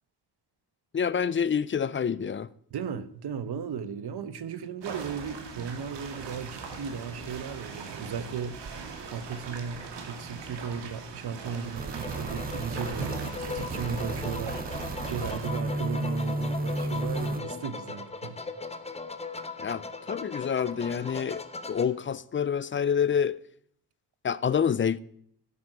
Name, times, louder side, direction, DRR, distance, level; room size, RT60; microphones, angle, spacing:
voice 1, 0.9-2.5 19.6-23.4 24.2-25.0, left 7 dB, 30° left, 0.4 m, -27 dB
voice 2, 2.7-18.4, right 6 dB, 65° right, 1.1 m, -36 dB
sound 1, 4.8-15.5, right 5 dB, 80° right, 2.2 m, -41 dB
sound 2, 11.8-17.4, right 2 dB, 20° right, 0.6 m, -33 dB
sound 3, 12.0-21.9, left 3 dB, 15° left, 0.7 m, -39 dB
15.5 x 8.4 x 5.0 m
wide cardioid pair, 145°, 42 cm